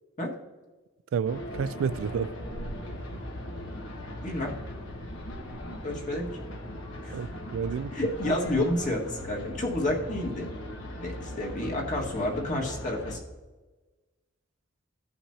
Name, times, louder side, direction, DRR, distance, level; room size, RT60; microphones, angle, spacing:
voice 1, 1.1-2.3 7.1-7.9, right 6 dB, 85° right, 0.3 m, -30 dB
sound 1, 1.2-13.2, left 1 dB, 75° left, 1.4 m, -39 dB
voice 2, 5.8-6.4 7.0-7.2 7.9-10.5 11.0-13.2, left 1 dB, 40° left, 1.7 m, -30 dB
15.5 x 5.8 x 2.8 m
head